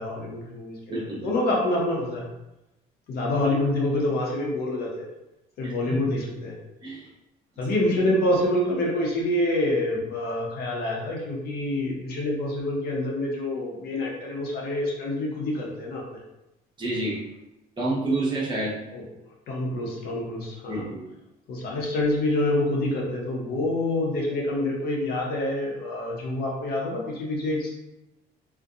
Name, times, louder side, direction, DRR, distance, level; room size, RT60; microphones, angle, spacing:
voice 1, 0.0-2.2 3.1-5.1 5.6-6.6 7.6-16.2 18.9-19.0 19.5-20.8 21.5-27.7, left 1 dB, 65° left, -2 dB, 0.7 m, -27 dB
voice 2, 0.9-1.3 5.6-6.0 6.8-7.1 16.8-17.2 17.8-18.8 20.7-21.1, right 2 dB, 25° right, -6 dB, 0.9 m, -28 dB
2.6 x 2.1 x 2.4 m, 0.92 s
cardioid pair, 110°, 17 cm